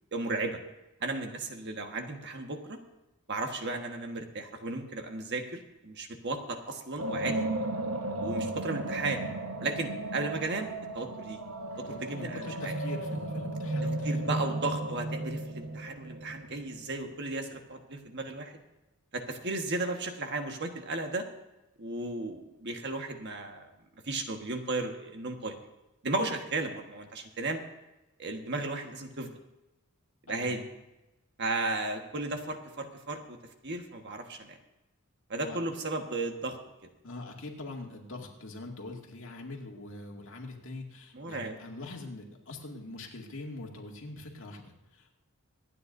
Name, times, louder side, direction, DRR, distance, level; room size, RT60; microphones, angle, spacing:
voice 1, 0.1-0.6 1.0-2.8 3.3-7.5 8.2-9.2 9.6-10.7 10.9-11.4 11.9-12.7 14.0-18.5 19.1-21.2 21.8-23.7 24.1-25.5 26.0-27.6 28.2-29.3 30.3-30.6 31.4-33.4 33.6-34.6 35.3-36.6 41.1-41.6, right 2 dB, 50° right, 4 dB, 1.5 m, -34 dB
sound 1, 7.0-17.1, right 2 dB, 85° right, 1.3 m, -34 dB
voice 2, 11.7-14.4 30.3-30.7 35.4-35.6 37.0-45.1, left 2 dB, 60° left, 0 dB, 2.3 m, -43 dB
26.0 x 9.5 x 2.7 m, 1.0 s
head